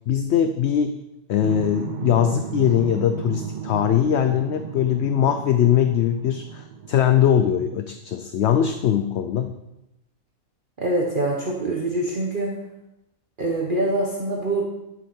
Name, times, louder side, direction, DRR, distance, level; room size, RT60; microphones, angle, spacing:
voice 1, 0.1-1.0 1.3-9.5, left 9 dB, 60° left, 8 dB, 0.8 m, -21 dB
sound 1, 1.4-8.0, right 7 dB, 65° right, 0.4 m, -34 dB
voice 2, 10.8-12.5 13.4-14.6, right 2 dB, 40° right, -1 dB, 1.3 m, -24 dB
11.0 x 8.3 x 4.4 m, 0.90 s
omnidirectional pair, 1.5 m